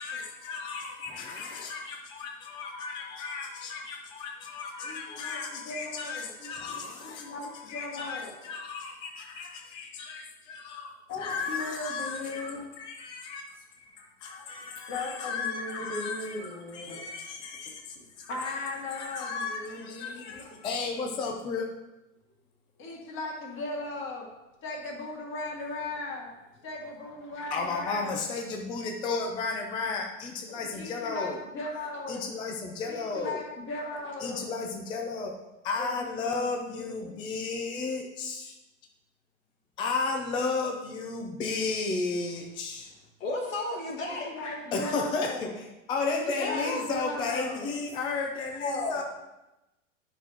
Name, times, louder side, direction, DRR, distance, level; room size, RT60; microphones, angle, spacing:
voice 1, 0.0-17.7 18.4-18.5 18.9-21.7 27.5-31.4 32.1-33.4 34.2-35.3 35.6-38.6 39.8-42.9 44.7-49.0, left 4 dB, 15° left, 2 dB, 0.4 m, -34 dB
voice 2, 4.8-6.8 7.2-8.3 11.1-12.6 14.9-17.0 18.3-20.5 22.8-24.3 24.6-26.3 26.6-28.1 30.5-32.3 32.8-34.5 35.8-37.1 44.0-45.5 46.1-47.7, left 2 dB, 30° left, -1 dB, 1.8 m, -38 dB
voice 3, 43.2-44.3 46.4-46.8 48.6-49.0, left 2 dB, 85° left, -1 dB, 2.0 m, -32 dB
9.1 x 6.0 x 2.9 m, 0.98 s
hypercardioid pair, 130°, 39 cm